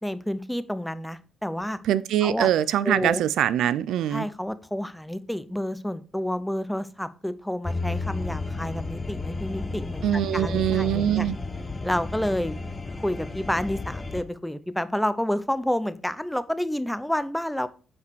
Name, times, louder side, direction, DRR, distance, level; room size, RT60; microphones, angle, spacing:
voice 1, 0.0-1.8 2.2-2.5 2.8-3.2 4.1-11.3 11.8-12.6 13.0-17.7, equal, 5° left, 0.7 m, -29 dB
voice 2, 1.9-4.2 10.0-11.3, right 11 dB, 80° right, 0.4 m, -23 dB
sound 1, 7.6-14.2, left 3 dB, 25° left, 1.0 m, -32 dB
8.4 x 4.8 x 4.6 m
cardioid pair, 90°, 0 cm